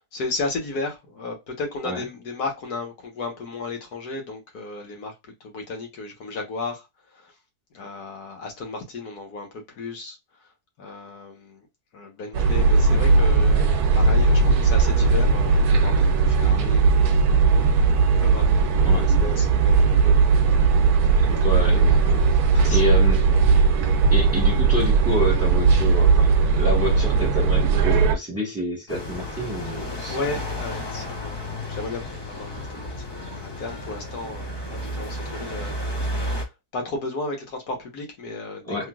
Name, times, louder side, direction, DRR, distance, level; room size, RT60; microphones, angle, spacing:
voice 1, 0.1-7.3 7.7-10.2 10.4-10.5 10.8-11.7 11.9-16.8 18.1-20.1 22.5-23.0 30.0-35.7 36.0-38.9, left 3 dB, 75° left, 1.6 m, -34 dB
sound 1, 12.3-28.1, right 4 dB, 75° right, 1.1 m, -18 dB
voice 2, 21.3-22.3 22.7-23.2 24.1-30.2 38.6-38.9, equal, 10° right, 1.1 m, -28 dB
sound 2, 28.9-36.4, left 1 dB, 25° left, 0.5 m, -32 dB
3.3 x 3.1 x 2.3 m
omnidirectional pair, 1.7 m